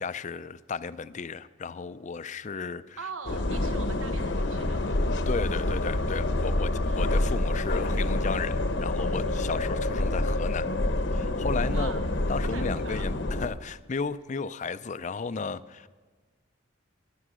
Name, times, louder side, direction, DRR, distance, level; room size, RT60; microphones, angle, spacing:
voice 1, 0.0-3.0 5.3-10.7 11.1-12.0 12.3-15.9, left 5 dB, 35° left, 15 dB, 0.5 m, -34 dB
voice 2, 3.0-5.0 6.5-7.2 11.7-12.0 12.5-13.1, right 5 dB, 85° right, 8 dB, 1.2 m, -42 dB
sound 1, 3.3-13.5, left 1 dB, 60° left, 0.9 m, -27 dB
21.5 x 10.5 x 6.2 m, 1.4 s
head